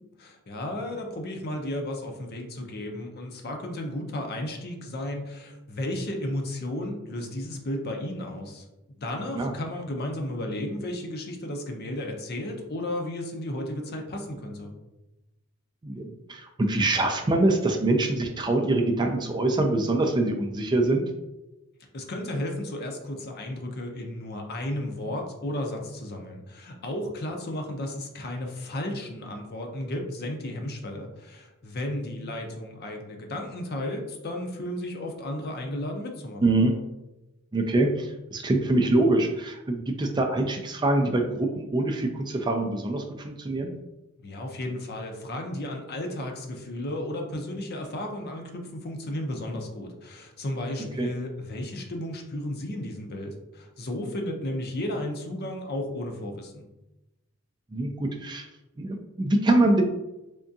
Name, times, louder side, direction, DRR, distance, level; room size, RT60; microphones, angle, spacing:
voice 1, 0.2-8.6 9.0-14.7 21.9-36.5 44.2-56.7, left 1 dB, 50° left, 3 dB, 0.6 m, -33 dB
voice 2, 15.8-21.0 36.4-36.7 37.5-43.7 51.0-51.1 57.7-58.5 58.8-59.8, right 2 dB, 20° right, 4 dB, 0.3 m, -24 dB
3.6 x 3.4 x 2.7 m, 0.97 s
head